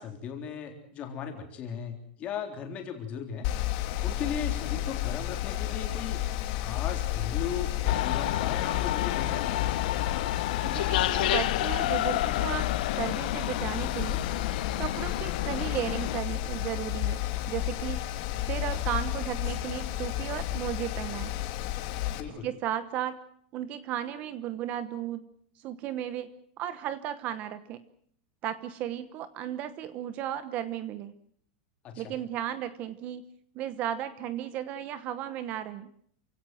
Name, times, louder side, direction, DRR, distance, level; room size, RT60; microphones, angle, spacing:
voice 1, 0.0-3.5 4.0-6.2 6.5-9.7 22.2-22.5 31.8-32.2, left 7 dB, 25° left, 4 dB, 3.7 m, -37 dB
Mechanical fan, 3.4-22.2, left 14 dB, 40° left, 2.2 m, -32 dB
sound 1, 7.9-16.2, left 14 dB, 60° left, 1.1 m, -30 dB
voice 2, 10.6-12.7 13.0-14.2 14.8-17.2 17.5-18.0 18.4-21.3 22.4-23.2 23.5-25.2 25.6-26.3 26.6-27.8 28.4-31.1 32.0-33.2 33.5-35.9, right 11 dB, 30° right, 13 dB, 1.0 m, -34 dB
28.5 x 17.0 x 7.9 m, 0.64 s
supercardioid pair, 170°, 5 cm